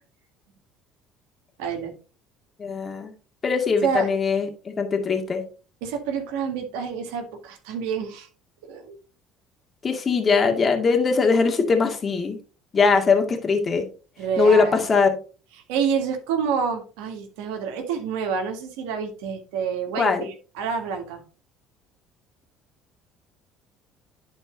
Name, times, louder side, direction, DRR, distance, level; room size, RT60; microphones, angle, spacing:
voice 1, 1.6-1.9 3.8-4.1 5.8-8.3 8.6-9.0 14.2-14.9 15.7-21.2, right 6 dB, 80° right, 4 dB, 1.9 m, -28 dB
voice 2, 2.6-3.1 3.4-5.4 9.8-12.4 12.7-13.9 14.4-15.1 20.0-20.3, left 4 dB, 35° left, 3 dB, 2.0 m, -21 dB
10.5 x 4.4 x 3.8 m, 0.35 s
hypercardioid pair, 75°, 0 cm